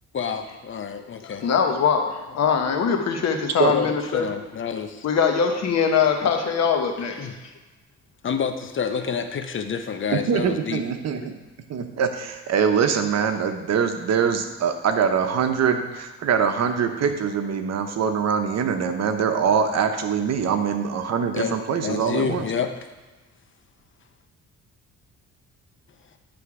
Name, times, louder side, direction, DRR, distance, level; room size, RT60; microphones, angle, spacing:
voice 1, 0.1-1.5 3.7-5.1 7.0-7.4 8.2-10.8 21.3-21.6 21.8-22.7, left 6 dB, 40° left, 7 dB, 0.7 m, -28 dB
voice 2, 1.2-4.3 5.0-7.1, left 6 dB, 60° left, 4 dB, 1.0 m, -22 dB
voice 3, 10.1-11.4 11.7-22.5, right 7 dB, 60° right, 7 dB, 0.8 m, -23 dB
10.0 x 3.4 x 4.8 m, 1.2 s
cardioid pair, 90°, 30 cm